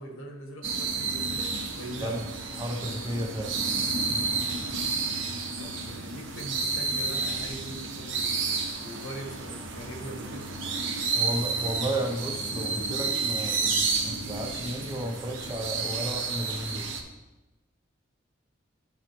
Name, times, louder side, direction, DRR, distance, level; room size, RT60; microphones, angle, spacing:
voice 1, 0.0-2.2 5.6-10.6, equal, 75° left, 2 dB, 1.3 m, -42 dB
sound 1, 0.6-17.0, right 4 dB, 65° right, 0.8 m, -31 dB
voice 2, 2.6-3.6 11.1-16.9, right 1 dB, 20° right, 1 dB, 0.8 m, -33 dB
11.0 x 4.9 x 3.1 m, 1.0 s
head